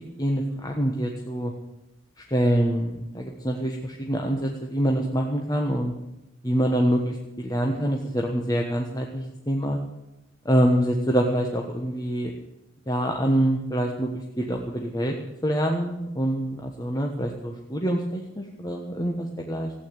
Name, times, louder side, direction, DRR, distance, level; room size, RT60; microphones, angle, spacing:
voice 1, 0.2-1.5 2.3-5.9 6.4-9.8 10.4-12.3 12.9-14.1 14.4-15.1 15.4-19.7, right 1 dB, 20° left, 1 dB, 1.2 m, -25 dB
15.5 x 8.9 x 9.3 m, 0.93 s
head